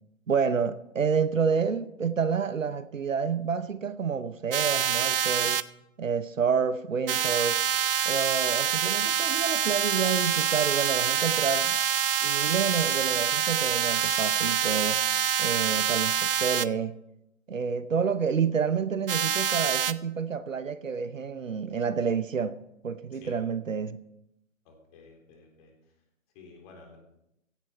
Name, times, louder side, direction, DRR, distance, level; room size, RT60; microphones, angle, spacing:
voice 1, 0.3-5.6 6.0-7.6 8.0-11.8 12.2-15.0 15.4-16.9 17.5-22.6 22.8-24.0, right 6 dB, 75° right, 0.9 m, -29 dB
sound 1, 4.5-5.6 7.1-16.7 19.1-19.9, right 9 dB, 45° right, 0.6 m, -26 dB
voice 2, 24.6-25.7 26.3-27.0, left 4 dB, 30° left, 3.7 m, -52 dB
16.0 x 10.5 x 4.5 m
figure-of-eight pair, 130°, 39 cm